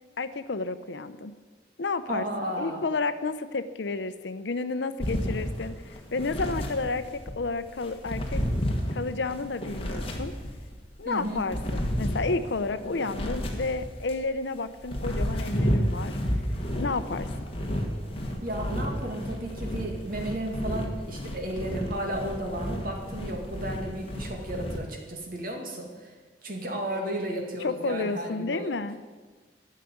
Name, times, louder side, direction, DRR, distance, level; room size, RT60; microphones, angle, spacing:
voice 1, 0.2-1.3 1.8-2.2 2.6-8.4 8.9-10.3 11.0-16.2 16.8-17.3 26.9-27.0 27.6-29.0, left 3 dB, 75° left, 12 dB, 0.7 m, -31 dB
voice 2, 2.1-2.9 11.0-11.4 18.4-28.7, right 1 dB, 50° right, 2 dB, 2.2 m, -34 dB
sound 1, 5.0-7.4 7.8-10.7 11.2-14.2 14.7-24.8, equal, 30° left, 1.6 m, -31 dB
11.5 x 6.6 x 9.6 m, 1.4 s
head